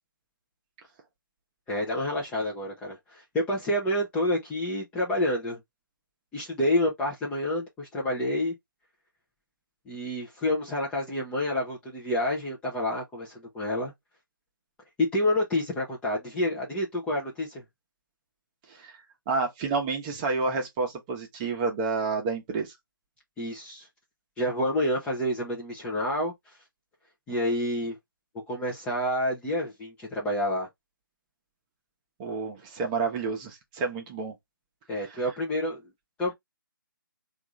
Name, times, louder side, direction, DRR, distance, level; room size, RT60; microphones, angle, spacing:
voice 1, 1.7-5.6 6.3-8.5 9.9-13.9 15.0-17.6 23.4-23.9 24.4-26.3 27.3-28.0 28.5-30.7 34.9-35.8 36.2-36.3, left 1 dB, 10° left, 0.6 m, -28 dB
voice 2, 19.3-22.7 32.2-34.3 35.1-35.2, right 4 dB, 20° right, 0.9 m, -29 dB
3.5 x 2.5 x 3.0 m
figure-of-eight pair, 150°, 11 cm